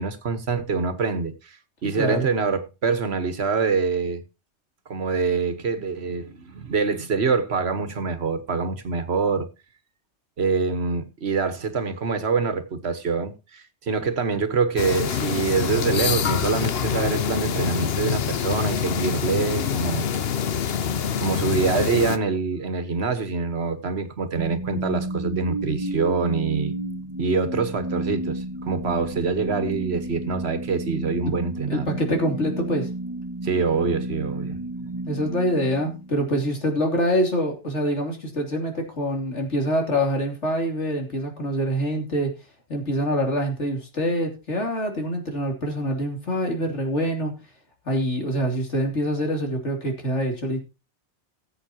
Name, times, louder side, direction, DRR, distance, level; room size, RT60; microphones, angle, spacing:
voice 1, 0.0-1.6 1.8-4.2 4.9-9.5 10.4-20.1 21.2-26.7 27.2-31.9 33.4-35.0, right 4 dB, 65° right, 1.6 m, -25 dB
sound 1, 14.8-22.2, left 7 dB, 60° left, 1.0 m, -25 dB
sound 2, 24.4-36.5, right 1 dB, 20° right, 1.0 m, -32 dB
voice 2, 31.7-32.9 35.1-42.3 42.7-47.3 47.9-50.6, equal, 85° left, 3.3 m, -25 dB
19.0 x 7.9 x 2.9 m
omnidirectional pair, 1.2 m